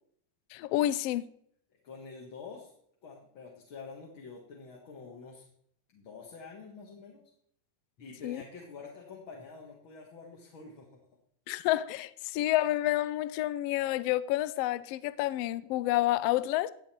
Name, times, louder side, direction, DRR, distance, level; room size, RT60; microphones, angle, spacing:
voice 1, 0.5-1.3 8.2-8.4 11.5-16.7, left 15 dB, 85° left, 1.4 m, -29 dB
voice 2, 1.8-2.7 3.0-5.5 5.9-7.2 8.0-11.0, left 4 dB, 45° left, 2.3 m, -47 dB
16.0 x 8.5 x 4.4 m
omnidirectional pair, 3.3 m